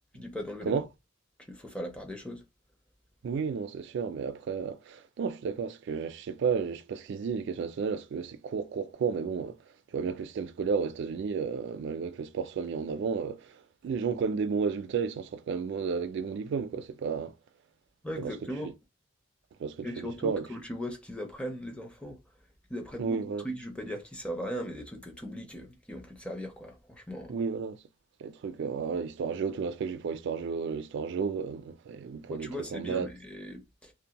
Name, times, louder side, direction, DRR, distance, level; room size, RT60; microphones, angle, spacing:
voice 1, 0.1-0.8 1.4-2.4 18.0-18.7 19.8-22.2 22.7-27.4 32.3-33.9, equal, 5° left, 0.5 m, -38 dB
voice 2, 3.2-9.6 9.9-17.3 18.2-18.3 19.6-20.4 23.0-23.4 27.3-27.8 28.2-33.1, right 5 dB, 60° right, 0.3 m, -32 dB
2.6 x 2.1 x 2.8 m
head